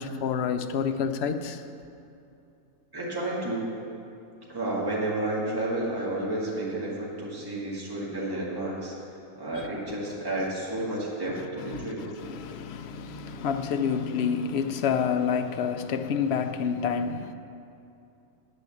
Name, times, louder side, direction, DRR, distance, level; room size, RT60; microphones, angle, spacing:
voice 1, 0.0-1.6 11.7-17.3, left 6 dB, 60° left, 8 dB, 0.7 m, -28 dB
voice 2, 2.9-3.7 4.5-8.9 9.4-12.0, right 1 dB, 15° right, -6 dB, 1.9 m, -31 dB
9.7 x 6.8 x 7.1 m, 2.7 s
omnidirectional pair, 1.4 m